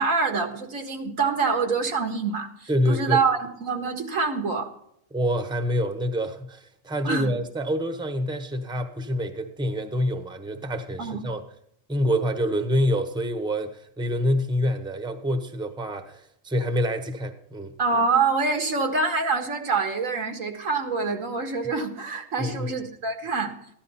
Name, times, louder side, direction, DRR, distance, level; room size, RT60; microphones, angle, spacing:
voice 1, 0.0-4.7 7.0-7.3 11.0-11.2 17.8-23.5, right 4 dB, 85° right, 3 dB, 2.1 m, -25 dB
voice 2, 2.7-3.2 5.1-11.4 11.9-17.7 22.4-22.7, equal, 5° right, 8 dB, 0.9 m, -26 dB
14.5 x 11.5 x 4.3 m, 0.72 s
omnidirectional pair, 1.3 m